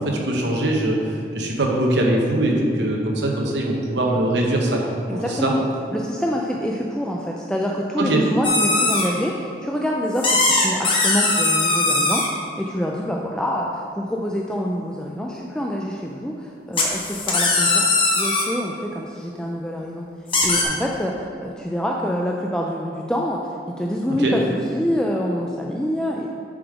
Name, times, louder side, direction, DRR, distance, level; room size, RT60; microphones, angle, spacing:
voice 1, 0.0-5.5 8.0-8.2 24.2-24.4, right 1 dB, 70° right, 0 dB, 0.8 m, -22 dB
voice 2, 5.1-5.6 5.9-12.2 12.6-20.1 20.4-23.4 23.8-24.4 24.7-26.3, equal, 5° left, -1 dB, 0.3 m, -26 dB
sound 1, 8.4-9.1 10.2-12.3 16.7-18.4 20.3-20.6, left 3 dB, 30° left, 0.9 m, -20 dB
7.3 x 5.0 x 4.8 m, 2.6 s
head